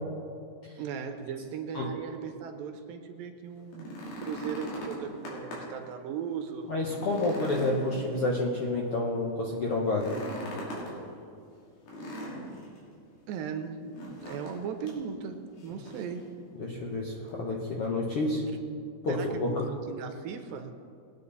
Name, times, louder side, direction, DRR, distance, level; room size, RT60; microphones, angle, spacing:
voice 1, 0.8-6.7 13.3-16.3 19.1-20.7, right 6 dB, 80° right, 6 dB, 2.5 m, -37 dB
sound 1, 3.6-5.8 6.2-6.3 6.8-8.7 9.9-11.0 11.9-12.8 13.9-14.6 14.9-15.0 15.6-16.2 17.3-17.4, equal, 80° left, 4.8 m, -40 dB
voice 2, 6.7-10.2 16.6-18.4 19.0-19.5, left 2 dB, 65° left, -2 dB, 1.4 m, -29 dB
21.5 x 9.2 x 4.1 m, 2.3 s
omnidirectional pair, 4.3 m